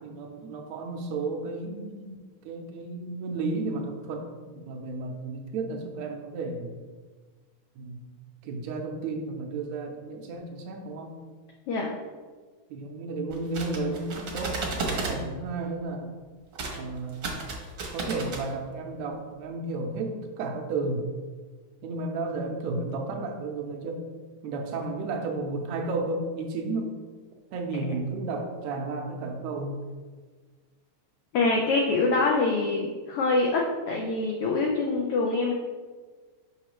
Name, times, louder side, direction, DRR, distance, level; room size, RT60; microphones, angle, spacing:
voice 1, 0.0-2.2 2.4-6.8 7.8-8.1 8.4-11.1 12.7-14.6 14.9-16.1 16.7-17.4 17.9-21.1 21.8-24.1 24.4-26.9 27.5-29.8, right 3 dB, 80° right, 3 dB, 2.0 m, -33 dB
sound 1, 13.3-15.2 16.5-16.8 17.1-18.4, right 3 dB, 55° right, 1.3 m, -33 dB
voice 2, 31.3-35.5, left 3 dB, 85° left, 0 dB, 1.2 m, -25 dB
6.9 x 5.5 x 3.1 m, 1.4 s
omnidirectional pair, 3.3 m